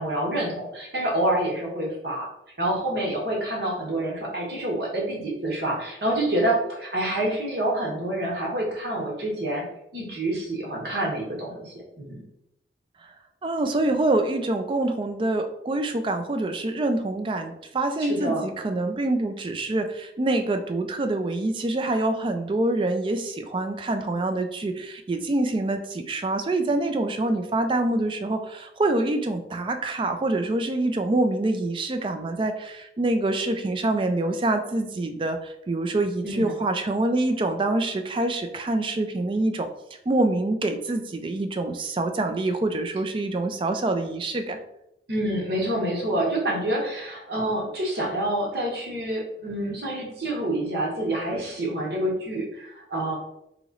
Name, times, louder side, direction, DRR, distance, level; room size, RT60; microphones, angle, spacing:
voice 1, 0.0-2.3 2.6-9.6 9.9-12.2 18.0-18.4 36.2-36.6 45.1-53.2, right 1 dB, 60° right, -3 dB, 1.1 m, -27 dB
voice 2, 13.4-35.4 35.7-39.7 40.1-44.6, right 2 dB, 30° right, 7 dB, 0.3 m, -26 dB
3.0 x 3.0 x 3.8 m, 0.81 s
head